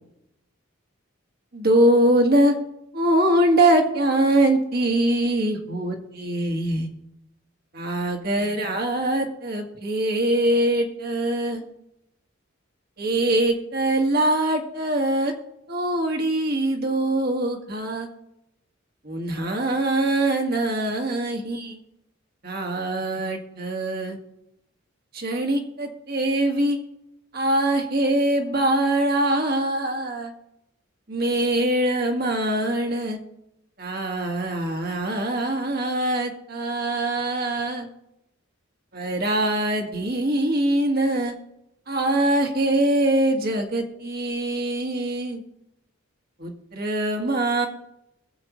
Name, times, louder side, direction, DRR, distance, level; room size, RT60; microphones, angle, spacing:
voice 1, 1.5-2.5 2.9-6.9 7.7-11.6 13.0-15.3 15.7-18.1 19.0-21.8 22.4-24.2 25.1-26.8 27.3-30.3 31.1-33.2 33.8-37.9 38.9-41.3 41.9-45.4 46.4-47.7, right 1 dB, 45° right, 2 dB, 1.7 m, -23 dB
22.0 x 7.8 x 3.1 m, 0.85 s
head